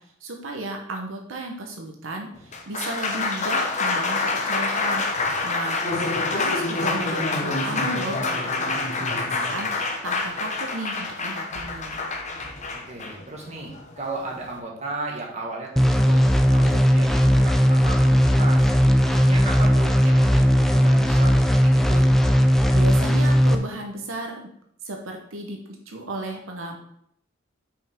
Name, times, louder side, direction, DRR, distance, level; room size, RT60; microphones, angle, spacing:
voice 1, 0.2-12.0 22.7-24.4 24.8-25.6 25.9-26.8, right 2 dB, 85° right, 2 dB, 1.0 m, -34 dB
Applause, 2.3-14.6, left 3 dB, 35° left, 0.8 m, -27 dB
voice 2, 12.8-18.7 19.0-22.1, right 2 dB, 35° right, -1 dB, 1.5 m, -35 dB
sound 1, 15.8-23.5, equal, ahead, 0.4 m, -17 dB
5.8 x 5.5 x 3.6 m, 0.69 s
head